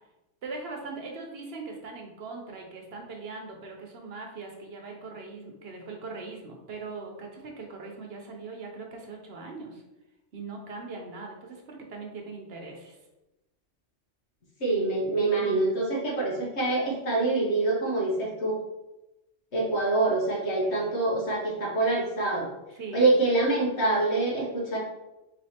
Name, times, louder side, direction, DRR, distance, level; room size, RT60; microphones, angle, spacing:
voice 1, 0.4-9.8 10.3-13.0 20.6-20.9 22.7-23.1, right 3 dB, 60° right, 1 dB, 0.9 m, -40 dB
voice 2, 14.6-18.6 19.5-22.5 22.9-24.8, right 2 dB, 65° left, -3 dB, 1.2 m, -25 dB
4.5 x 3.2 x 2.8 m, 0.99 s
omnidirectional pair, 1.2 m